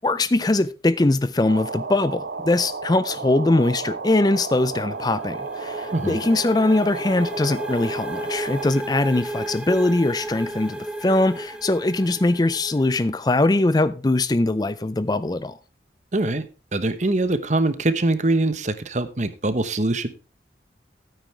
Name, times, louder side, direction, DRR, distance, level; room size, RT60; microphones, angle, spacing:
voice 1, 0.0-15.6, left 2 dB, 20° left, 0.4 m, -21 dB
sound 1, 1.5-8.7, right 4 dB, 70° right, 1.1 m, -33 dB
sound 2, 4.5-13.2, right 1 dB, 5° right, 1.4 m, -34 dB
voice 2, 16.1-16.5 16.7-20.1, right 2 dB, 40° right, 1.0 m, -23 dB
14.0 x 9.1 x 3.3 m
head